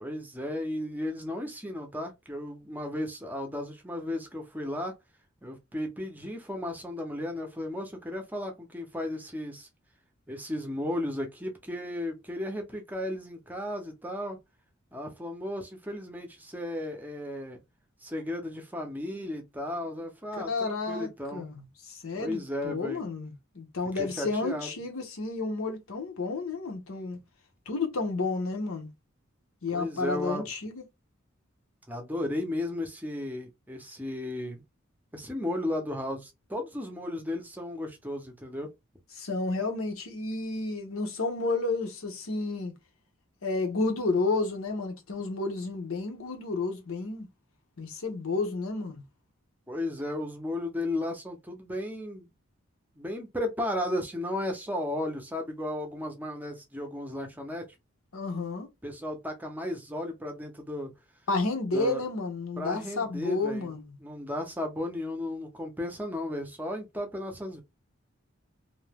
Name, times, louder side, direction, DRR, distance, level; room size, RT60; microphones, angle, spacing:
voice 1, 0.0-5.0 5.4-9.7 10.3-14.4 14.9-17.6 18.0-21.5 22.1-23.0 24.0-24.7 29.7-30.5 31.9-34.6 35.1-38.7 49.7-52.3 53.0-57.7 58.8-60.9 61.7-62.0 62.6-63.7 64.0-67.6, left 1 dB, 10° right, 0.6 m, -34 dB
voice 2, 20.3-27.2 27.7-28.9 29.6-30.8 39.2-42.7 43.4-47.3 47.8-49.0 58.1-58.7 61.3-63.9, left 3 dB, 85° left, 0.9 m, -31 dB
2.6 x 2.1 x 3.4 m
head